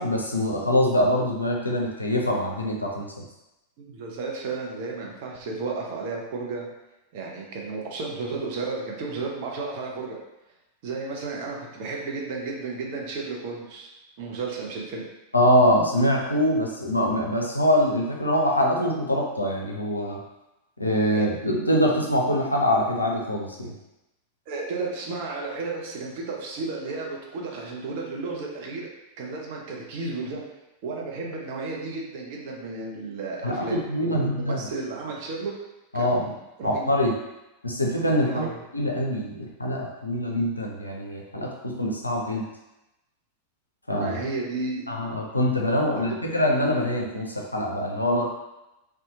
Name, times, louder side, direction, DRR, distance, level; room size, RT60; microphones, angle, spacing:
voice 1, 0.0-3.2 15.3-20.2 20.8-23.7 33.4-34.6 35.9-36.3 36.6-37.2 37.6-38.5 38.7-42.4 43.9-44.2 44.9-48.3, equal, 85° left, -1 dB, 0.4 m, -24 dB
voice 2, 3.8-6.7 7.1-10.2 10.8-13.9 14.2-15.0 21.1-21.3 24.5-28.9 29.2-30.4 30.8-35.5 35.9-36.9 38.3-38.6 44.0-44.9 45.8-46.2, right 3 dB, 50° right, -1 dB, 0.5 m, -33 dB
2.7 x 2.2 x 2.7 m, 0.95 s
figure-of-eight pair, 90°, 0 cm